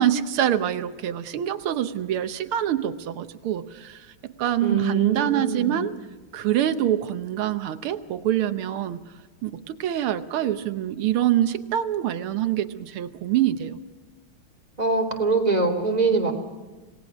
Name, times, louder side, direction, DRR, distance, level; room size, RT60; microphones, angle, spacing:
voice 1, 0.0-6.0 6.3-9.0 9.4-13.8, right 11 dB, 90° right, 9 dB, 1.8 m, -25 dB
voice 2, 4.6-5.8 14.8-16.3, right 4 dB, 20° right, 2 dB, 3.0 m, -23 dB
27.0 x 18.5 x 6.2 m, 1.2 s
omnidirectional pair, 2.3 m